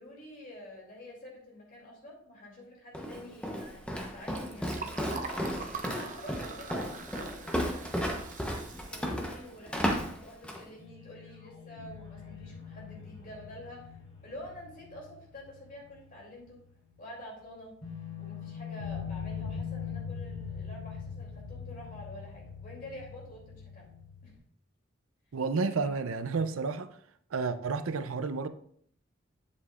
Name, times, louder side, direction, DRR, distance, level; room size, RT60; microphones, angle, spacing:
voice 1, 0.0-5.3 5.9-6.9 7.1-7.8 8.4-13.9 14.2-16.6 17.0-17.7 18.2-23.9 24.2-24.3, left 1 dB, 40° left, 2.8 m, -48 dB
Walk footsteps, 2.9-10.7, equal, 5° left, 0.8 m, -34 dB
Liquid, 3.7-10.2, right 5 dB, 40° right, 0.6 m, -44 dB
sound 1, 10.8-16.2 16.5-16.6 17.8-24.4, left 6 dB, 85° left, 2.9 m, -42 dB
voice 2, 25.3-26.9 27.3-28.5, right 4 dB, 90° right, 0.5 m, -31 dB
8.4 x 7.5 x 2.4 m
head